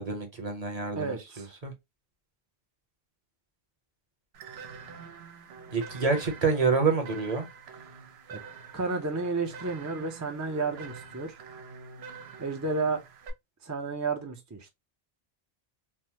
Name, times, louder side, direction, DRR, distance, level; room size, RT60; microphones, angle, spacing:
voice 1, 0.0-1.7 5.7-7.5, right 4 dB, 40° right, 0.9 m, -27 dB
voice 2, 1.0-1.5 8.3-8.4 8.7-11.4 12.4-13.0 13.6-14.7, right 4 dB, 25° right, 0.4 m, -32 dB
sound 1, 4.3-13.3, right 5 dB, 80° right, 0.9 m, -46 dB
3.4 x 2.0 x 2.8 m
omnidirectional pair, 1.0 m